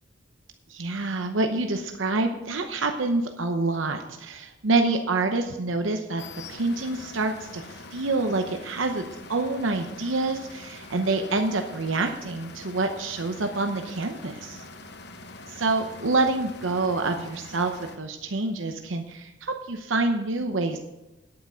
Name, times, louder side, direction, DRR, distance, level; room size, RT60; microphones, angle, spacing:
voice 1, 0.7-6.2 6.5-14.6 15.5-20.8, right 3 dB, 85° right, 5 dB, 0.8 m, -27 dB
sound 1, 6.2-18.0, left 3 dB, 60° left, 1.1 m, -44 dB
10.0 x 8.8 x 5.1 m, 1.0 s
head